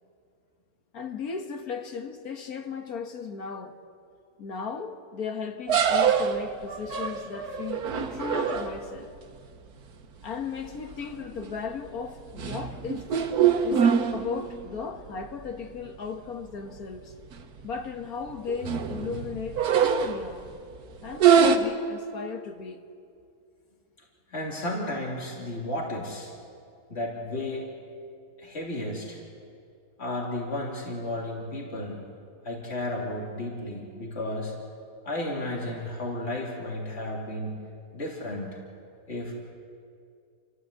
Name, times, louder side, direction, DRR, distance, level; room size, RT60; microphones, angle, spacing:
voice 1, 0.9-3.8 4.4-9.1 10.2-13.1 13.6-17.1 17.6-20.5 21.0-22.8, left 5 dB, 70° left, 2.0 m, -36 dB
sound 1, 5.7-9.0 10.7-10.9 11.3-11.7 12.1-14.6 15.1-15.2 15.5-15.6 16.4-16.5 16.8-17.0 17.3-17.7 18.3-20.5 21.1-21.6, right 7 dB, 80° right, 1.7 m, -24 dB
voice 2, 24.3-26.3 26.9-27.7 28.4-29.2 30.0-32.1 32.4-34.5 35.0-37.6 37.9-38.5 39.1-39.3, left 1 dB, 45° left, 3.4 m, -33 dB
28.5 x 14.5 x 8.2 m
omnidirectional pair, 1.6 m